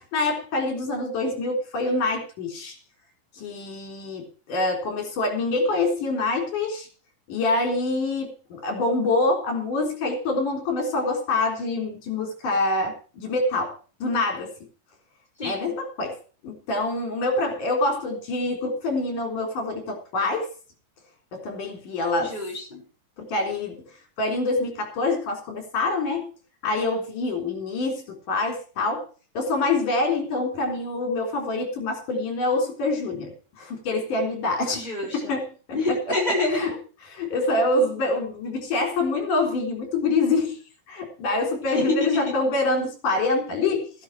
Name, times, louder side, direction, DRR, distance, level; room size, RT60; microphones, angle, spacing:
voice 1, 0.0-2.8 3.3-6.9 7.3-13.8 14.0-14.5 15.4-16.2 16.4-20.5 21.3-22.4 23.2-23.8 24.2-26.3 26.6-29.1 29.3-35.5 36.5-36.8 37.1-40.6 40.9-43.9, left 2 dB, 65° left, 3 dB, 5.6 m, -26 dB
voice 2, 15.4-15.7 22.2-22.8 34.7-35.4 35.7-36.7 41.6-42.3, left 2 dB, 10° left, -2 dB, 6.2 m, -27 dB
14.5 x 11.5 x 4.9 m, 0.38 s
omnidirectional pair, 4.0 m